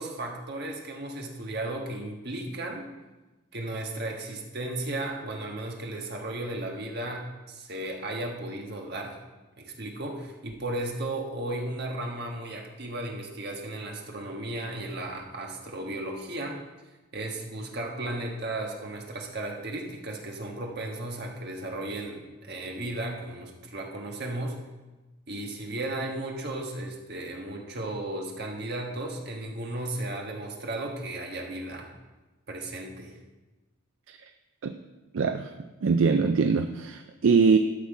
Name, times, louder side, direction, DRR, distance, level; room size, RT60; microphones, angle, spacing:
voice 1, 0.0-2.9 3.5-9.2 9.6-16.6 17.1-24.6 25.3-31.9 32.5-33.1, right 1 dB, 50° right, 1 dB, 1.4 m, -35 dB
voice 2, 35.1-35.5 35.8-37.6, right 5 dB, 65° right, 8 dB, 0.4 m, -22 dB
12.5 x 5.9 x 4.8 m, 1.1 s
head